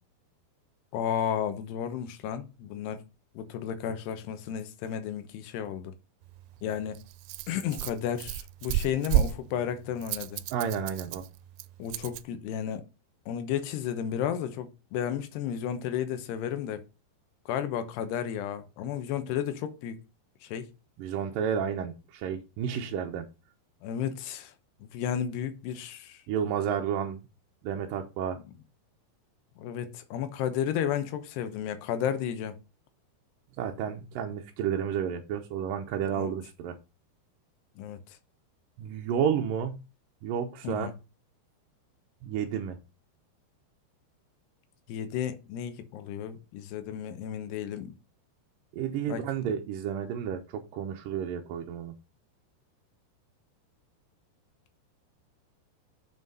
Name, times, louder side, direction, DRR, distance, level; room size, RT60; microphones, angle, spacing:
voice 1, 0.9-3.0 3.3-5.9 6.6-7.0 7.5-10.4 11.8-12.9 13.3-16.8 17.5-20.0 20.4-20.7 23.8-24.5 24.9-26.2 29.6-32.6 36.1-36.3 37.8-38.0 40.6-40.9 44.9-47.9 49.1-49.2, left 9 dB, 80° left, 3.1 m, -33 dB
Rattle, 6.2-12.3, right 13 dB, 90° right, 2.8 m, -33 dB
voice 2, 10.5-11.2 21.0-23.3 26.3-27.2 27.6-28.4 33.6-36.8 38.8-39.8 40.2-40.9 42.2-42.8 48.7-51.9, right 8 dB, 70° right, 2.2 m, -31 dB
7.3 x 6.0 x 5.4 m
omnidirectional pair, 4.8 m